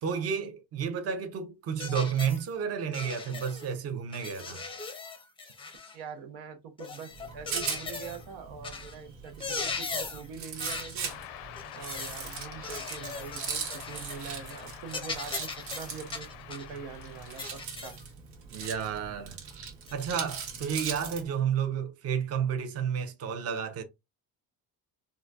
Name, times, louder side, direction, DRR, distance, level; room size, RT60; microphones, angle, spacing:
voice 1, 0.0-4.6 18.5-19.4 19.9-23.8, right 7 dB, 40° right, 0.6 m, -31 dB
sound 1, 1.8-2.4 2.9-3.7 4.1-6.0 6.8-8.2 8.6-8.9 9.2-10.3 10.6-11.0 11.6-12.2 12.6-14.2 14.5-14.6 14.9-16.7 17.4-18.0 18.6-18.7 19.9-20.0, left 4 dB, 15° left, 0.5 m, -39 dB
voice 2, 5.9-11.2 11.7-18.0, right 6 dB, 90° right, 0.8 m, -44 dB
Rattle, 7.1-21.2, right 6 dB, 70° right, 1.2 m, -40 dB
sound 2, 11.0-17.5, left 12 dB, 80° left, 0.5 m, -46 dB
3.8 x 2.2 x 2.2 m
cardioid pair, 130°, 40 cm